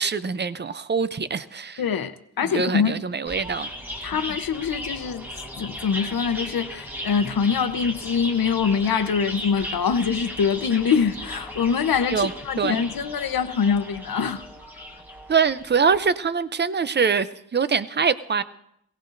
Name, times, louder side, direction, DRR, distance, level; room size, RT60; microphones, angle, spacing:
voice 1, 0.0-1.8 2.4-3.7 4.1-4.2 12.1-12.3 12.6-12.8 15.3-17.3 17.5-18.4, right 6 dB, 30° right, 0.5 m, -23 dB
voice 2, 1.8-3.0 4.0-5.3 5.6-14.4, left 6 dB, 70° left, 0.8 m, -24 dB
sound 1, 3.3-16.1, left 1 dB, 5° right, 1.2 m, -36 dB
22.0 x 17.0 x 2.6 m
wide cardioid pair, 175°, 37 cm